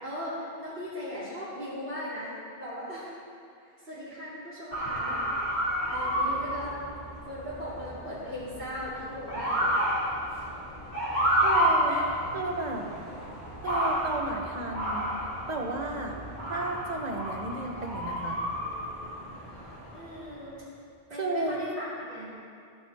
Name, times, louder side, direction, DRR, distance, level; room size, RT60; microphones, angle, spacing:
voice 1, 0.0-2.3 2.6-3.1 3.6-5.2 5.5-6.8 7.2-9.8 10.3-10.4 11.9-12.0 19.9-20.7 21.1-22.3, equal, 75° right, -15 dB, 3.3 m, -38 dB
Motor vehicle (road) / Siren, 4.7-20.3, equal, 40° left, 3.2 m, -31 dB
voice 2, 11.4-12.0 12.3-12.9 13.6-15.1 15.5-16.1 16.5-18.4 21.2-21.6, right 2 dB, 45° right, 2 dB, 1.2 m, -33 dB
15.5 x 8.0 x 3.5 m, 2.4 s
omnidirectional pair, 1.0 m